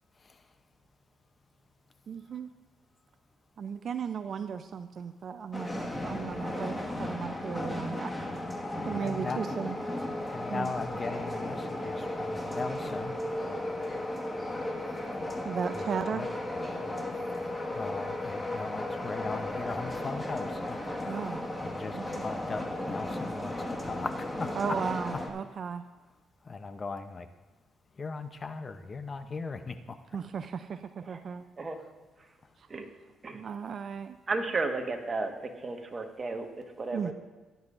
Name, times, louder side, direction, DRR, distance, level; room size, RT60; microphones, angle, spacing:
voice 1, 2.1-2.5 3.6-8.1 8.8-9.8 10.5-10.7 15.4-16.2 21.1-21.4 21.9-22.2 24.6-25.8 30.1-31.5 33.3-34.2 36.9-37.1, right 7 dB, 55° right, 10 dB, 0.4 m, -35 dB
sound 1, 5.5-25.3, left 1 dB, 15° left, 1.7 m, -35 dB
voice 2, 9.0-9.4 10.2-13.2 15.7-16.3 16.7-17.3 17.7-20.8 21.0-21.2 21.6-22.6 22.9-24.8 26.4-27.3 28.0-30.0 31.4-31.5 31.8-31.9, left 4 dB, 35° left, 9 dB, 0.7 m, -38 dB
voice 3, 34.3-35.3 35.6-37.1, right 3 dB, 35° right, 4 dB, 1.5 m, -33 dB
16.5 x 10.5 x 2.6 m, 1.2 s
cardioid pair, 90°, 0 cm